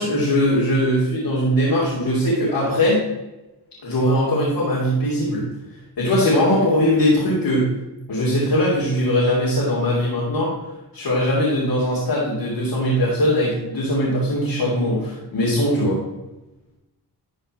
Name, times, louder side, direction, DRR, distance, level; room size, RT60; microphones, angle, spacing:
voice 1, 0.0-3.0 3.8-5.4 6.0-7.7 8.1-10.5 10.9-16.0, equal, 75° left, -7 dB, 3.1 m, -20 dB
13.0 x 4.6 x 4.4 m, 1.0 s
cardioid pair, 50°, 41 cm